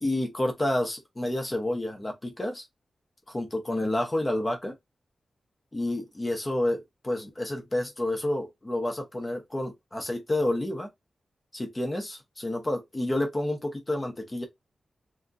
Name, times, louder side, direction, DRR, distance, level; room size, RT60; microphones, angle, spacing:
voice 1, 0.0-2.6 3.3-4.7 5.7-10.9 11.5-14.5, left 1 dB, 20° left, 0.7 m, -29 dB
2.7 x 2.5 x 2.3 m
wide cardioid pair, 180°, 0 cm